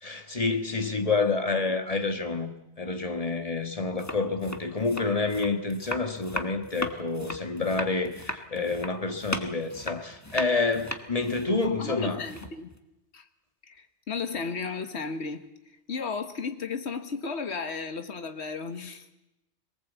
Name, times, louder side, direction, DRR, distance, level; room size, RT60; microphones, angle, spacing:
voice 1, 0.0-2.5 2.8-12.2, left 3 dB, 30° left, 1.7 m, -28 dB
sound 1, 3.9-12.8, left 1 dB, 15° left, 1.4 m, -37 dB
voice 2, 11.8-12.7 13.1-13.2 13.7-15.5 15.9-19.1, left 4 dB, 70° left, 1.7 m, -34 dB
22.0 x 19.0 x 8.2 m
omnidirectional pair, 1.2 m